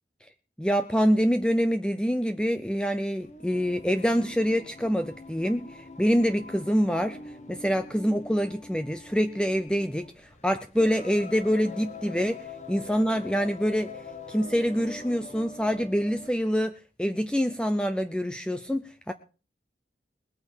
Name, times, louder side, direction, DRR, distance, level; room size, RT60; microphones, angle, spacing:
voice 1, 0.6-16.7 17.0-19.1, equal, 5° left, 9 dB, 0.6 m, -26 dB
Singing, 3.2-16.4, left 3 dB, 40° left, 1.2 m, -44 dB
20.5 x 8.8 x 4.6 m, 0.36 s
head